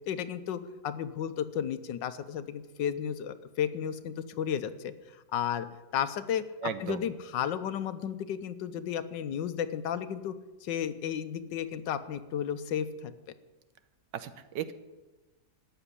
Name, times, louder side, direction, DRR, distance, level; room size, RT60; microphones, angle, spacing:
voice 1, 0.1-4.9 5.3-5.7 5.9-6.4 6.8-10.3 10.6-13.1, left 9 dB, 75° left, 12 dB, 1.4 m, -33 dB
voice 2, 6.6-7.1 14.1-14.7, right 7 dB, 70° right, 12 dB, 1.4 m, -35 dB
14.0 x 6.9 x 9.8 m, 1.2 s
omnidirectional pair, 2.0 m